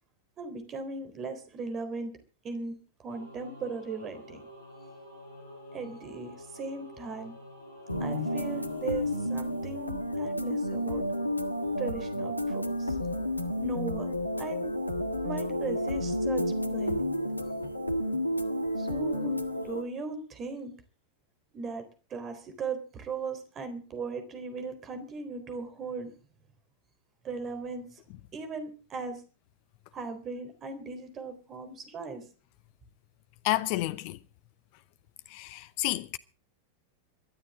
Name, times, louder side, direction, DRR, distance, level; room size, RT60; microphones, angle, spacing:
voice 1, 0.4-2.1 2.4-4.4 5.7-7.3 8.0-11.0 11.8-13.0 13.6-14.1 14.4-14.8 15.2-17.1 18.8-19.4 19.6-20.7 21.5-21.8 22.1-26.1 27.2-28.0 28.3-29.2 29.9-32.2, right 4 dB, 30° right, 3.8 m, -38 dB
Singing / Musical instrument, 3.1-10.6, left 1 dB, 65° left, 7.5 m, -49 dB
sound 1, 7.9-19.8, left 1 dB, 85° left, 1.5 m, -31 dB
voice 2, 33.4-34.2 35.3-36.2, left 17 dB, 45° left, 0.8 m, -30 dB
23.0 x 13.0 x 3.7 m
figure-of-eight pair, 90°, 0 cm